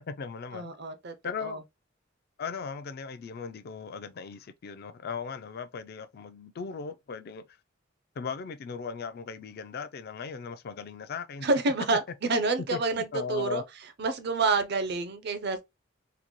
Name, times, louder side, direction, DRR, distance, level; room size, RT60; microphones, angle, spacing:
voice 1, 0.0-0.7 1.2-1.6 2.4-7.4 8.2-13.6, left 5 dB, 55° left, 0.4 m, -38 dB
voice 2, 0.5-1.1 1.4-1.6 11.4-12.0 12.3-13.6 14.0-15.6, right 3 dB, 60° right, 0.6 m, -28 dB
3.9 x 2.2 x 3.0 m
head